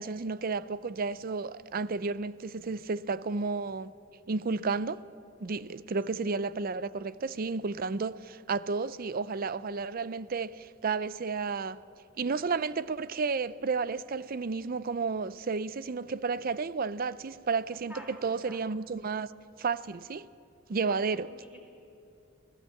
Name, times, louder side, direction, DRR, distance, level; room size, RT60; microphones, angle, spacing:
voice 1, 0.0-3.9 4.3-5.0 5.4-11.8 12.2-19.3 19.6-20.3 20.7-21.3, right 4 dB, 45° right, 0.5 m, -32 dB
voice 2, 5.8-6.2 17.7-18.6 20.9-21.6, equal, 10° right, 4.1 m, -50 dB
26.0 x 16.5 x 7.8 m
head